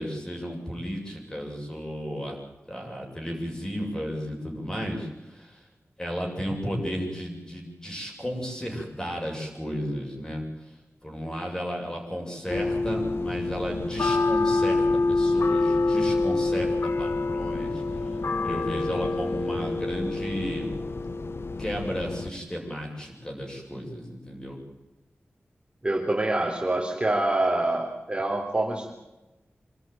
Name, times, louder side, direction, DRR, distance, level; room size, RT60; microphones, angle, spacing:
voice 1, 0.0-2.4 2.7-5.6 6.0-10.4 11.0-16.7 17.0-20.7 21.6-24.6, equal, 15° left, 0 dB, 7.4 m, -33 dB
sound 1, 12.5-22.3, left 3 dB, 65° left, 1.2 m, -26 dB
voice 2, 25.8-28.9, right 2 dB, 20° right, 0 dB, 3.6 m, -26 dB
26.0 x 13.0 x 9.2 m, 1.0 s
wide cardioid pair, 90°, 4 cm